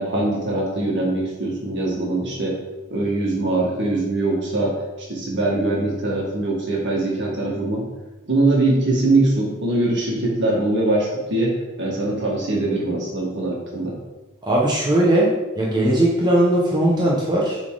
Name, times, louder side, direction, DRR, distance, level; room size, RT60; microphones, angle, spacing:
voice 1, 0.0-2.6 2.9-7.9 8.3-11.5 11.8-14.0, right 2 dB, 55° right, -3 dB, 2.0 m, -22 dB
voice 2, 14.4-17.6, right 1 dB, 20° right, -4 dB, 1.1 m, -19 dB
8.1 x 4.1 x 3.9 m, 1.1 s
head